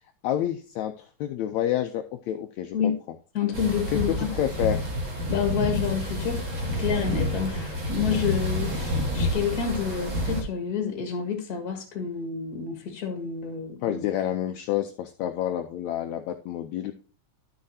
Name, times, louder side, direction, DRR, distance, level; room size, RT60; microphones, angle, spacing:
voice 1, 0.2-2.9 3.9-4.8 13.8-16.9, left 11 dB, 75° left, 1.8 m, -29 dB
voice 2, 3.3-4.3 5.3-6.4 6.8-14.0, left 7 dB, 35° left, 1.8 m, -29 dB
sound 1, 3.5-10.4, left 1 dB, 40° right, 1.1 m, -29 dB
12.0 x 6.4 x 2.7 m
omnidirectional pair, 3.5 m